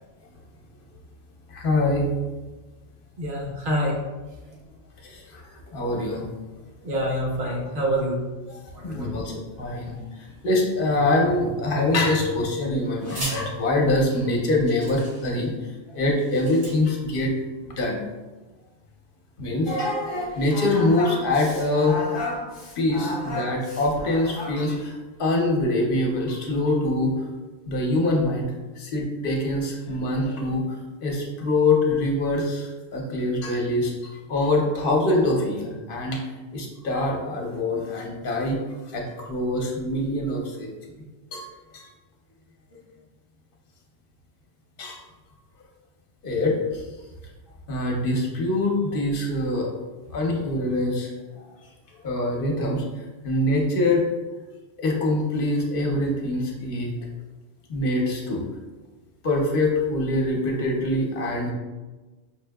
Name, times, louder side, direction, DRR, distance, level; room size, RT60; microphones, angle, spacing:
voice 1, 1.5-2.1 5.0-5.4 5.7-6.3 8.8-15.5 15.9-18.0 19.4-20.0 20.4-22.0 22.8-27.1 27.7-30.6 31.0-36.2 36.5-38.6 38.9-40.7 41.3-41.5 41.7-41.9 44.8-45.0 46.2-46.8 47.7-49.7 50.1-51.1 52.0-54.0 54.8-56.9 57.7-58.4 59.2-61.5, left 2 dB, 60° left, 0 dB, 0.9 m, -24 dB
voice 2, 3.2-4.0 6.8-8.3 8.7-9.2, equal, 55° right, -2 dB, 1.0 m, -26 dB
sound 1, 11.9-12.4 13.0-13.4 14.1-14.2 14.7-15.5 16.1-16.7, right 1 dB, 75° right, 1.9 m, -37 dB
Singing, 19.6-24.7, left 1 dB, 30° left, 0.5 m, -32 dB
5.3 x 2.7 x 2.2 m, 1.2 s
omnidirectional pair, 1.1 m